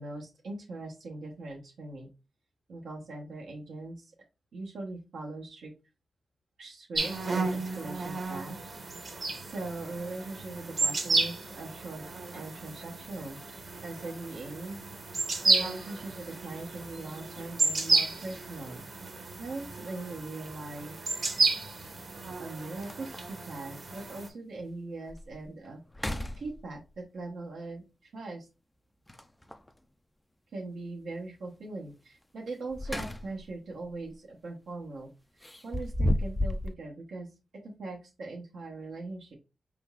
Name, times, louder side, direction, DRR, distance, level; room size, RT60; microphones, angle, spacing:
voice 1, 0.0-2.1 2.7-4.1 4.5-5.7 6.6-8.6 8.8-9.0 9.4-12.1 12.3-13.4 13.8-14.8 15.4-18.8 19.4-21.0 22.4-25.8 26.4-28.5 30.5-35.1 35.4-37.3 37.6-39.3, right 2 dB, 85° right, -1 dB, 0.9 m, -40 dB
sound 1, 6.9-24.3, right 3 dB, 45° right, 1.0 m, -32 dB
sound 2, 20.1-20.2 22.0-22.1 22.5-22.6 22.8-23.4 23.9-24.0 24.6-24.7 25.1-25.4 25.9-27.0 29.1-29.7 32.5-33.5 33.9-34.1 35.4-36.7, left 1 dB, 10° left, 0.4 m, -33 dB
4.6 x 3.7 x 2.3 m, 0.28 s
wide cardioid pair, 110°, 0 cm